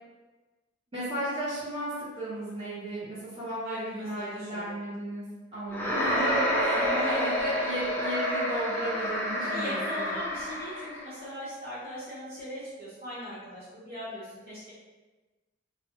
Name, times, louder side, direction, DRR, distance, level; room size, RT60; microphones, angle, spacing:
voice 1, 0.9-5.2 5.5-10.0, right 1 dB, 30° right, -12 dB, 1.1 m, -34 dB
voice 2, 3.6-4.7 6.7-7.4 9.5-14.7, equal, 55° right, -11 dB, 1.1 m, -39 dB
sound 1, 5.7-11.1, equal, 10° left, 0.4 m, -29 dB
2.5 x 2.1 x 2.9 m, 1.2 s
head